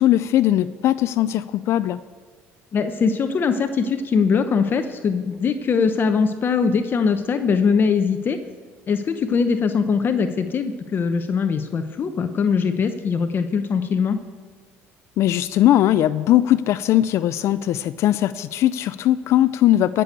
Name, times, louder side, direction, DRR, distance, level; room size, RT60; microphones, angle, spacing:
voice 1, 0.0-2.0 15.2-20.0, left 13 dB, 65° left, 15 dB, 0.4 m, -19 dB
voice 2, 2.7-8.4 8.9-14.2, left 5 dB, 45° left, 8 dB, 0.8 m, -21 dB
14.5 x 6.9 x 8.2 m, 1.5 s
supercardioid pair, 90°, 5 cm